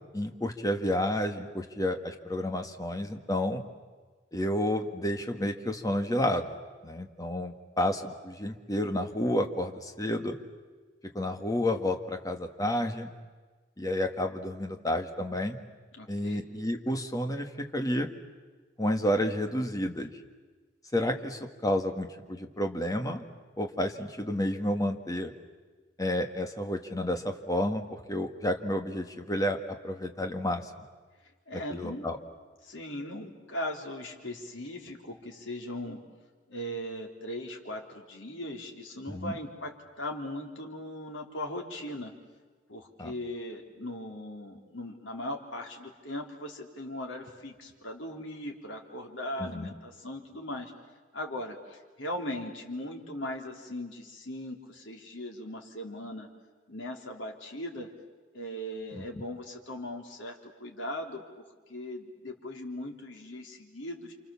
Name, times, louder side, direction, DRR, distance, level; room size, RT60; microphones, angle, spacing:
voice 1, 0.1-3.6 4.3-6.6 6.8-10.4 11.1-13.1 13.8-15.6 16.1-18.1 18.8-20.1 20.9-23.2 23.6-25.3 26.0-29.6 29.8-30.7 31.7-32.2 39.1-39.4 43.0-43.1 49.4-49.7 58.9-59.2, left 1 dB, 20° left, 5 dB, 1.8 m, -30 dB
voice 2, 16.0-16.4 31.5-32.1 32.6-36.0 36.5-42.1 42.7-50.7 51.1-56.3 56.7-57.9 58.3-61.4 61.7-64.1, left 1 dB, 85° left, 1 dB, 3.8 m, -39 dB
29.5 x 27.0 x 7.3 m, 1.4 s
head